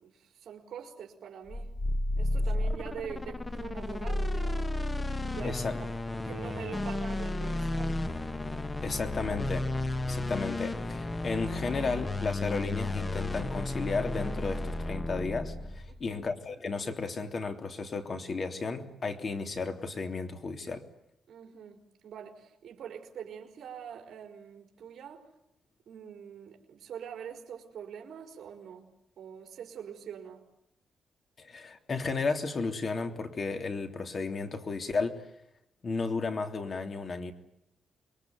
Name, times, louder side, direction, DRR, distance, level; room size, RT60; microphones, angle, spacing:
voice 1, 0.0-1.7 2.2-4.8 5.3-5.6 6.2-8.0 15.9-16.2 21.3-25.2 25.9-28.9 29.2-30.4, right 8 dB, 65° right, 3 dB, 4.5 m, -44 dB
sound 1, 1.5-16.1, left 2 dB, 20° left, 1.0 m, -33 dB
voice 2, 5.4-5.8 8.8-9.7 10.0-20.8 31.4-35.2 35.8-37.3, left 4 dB, 40° left, 6 dB, 3.1 m, -33 dB
27.0 x 22.0 x 9.4 m, 0.77 s
cardioid pair, 125°, 0 cm